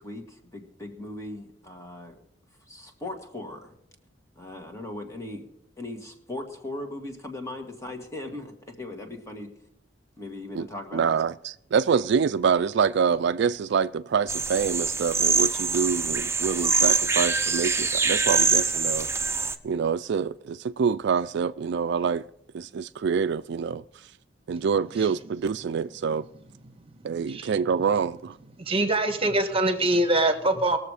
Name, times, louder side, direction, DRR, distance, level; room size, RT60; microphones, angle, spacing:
voice 1, 0.0-2.2 2.7-3.8 4.4-5.5 5.8-9.5 10.2-11.2, left 1 dB, 15° left, 1.9 m, -38 dB
voice 2, 10.9-19.1 19.6-22.2 22.5-23.8 24.5-26.2 27.0-28.4, right 6 dB, 65° right, 0.4 m, -26 dB
sound 1, 14.3-19.6, right 4 dB, 15° right, 0.7 m, -24 dB
voice 3, 28.6-30.8, right 2 dB, 30° right, 1.4 m, -23 dB
20.5 x 7.1 x 4.9 m
head